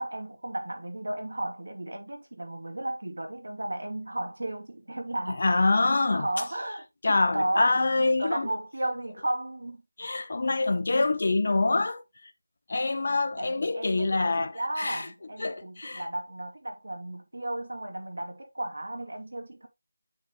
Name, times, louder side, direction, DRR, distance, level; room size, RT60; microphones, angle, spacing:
voice 1, 0.0-5.6 6.1-9.8 13.4-19.7, right 1 dB, 80° right, 2.3 m, -34 dB
voice 2, 5.4-6.3 7.0-8.5 10.0-12.0 12.7-15.1 15.4-16.0, left 3 dB, 50° left, 1.1 m, -25 dB
8.5 x 6.2 x 2.9 m
figure-of-eight pair, 170°, 0 cm